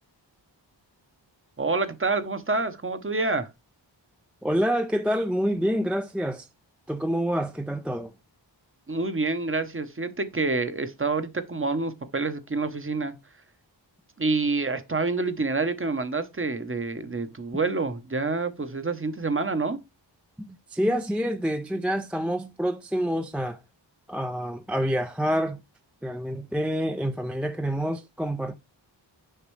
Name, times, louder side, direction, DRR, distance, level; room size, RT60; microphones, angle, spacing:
voice 1, 1.6-3.5 8.9-13.1 14.2-19.8, right 3 dB, 30° right, 0.8 m, -27 dB
voice 2, 4.4-6.5 6.9-8.1 20.4-23.6 24.1-25.6 26.0-28.5, equal, 5° right, 0.4 m, -27 dB
6.6 x 5.0 x 3.2 m
wide cardioid pair, 90°, 46 cm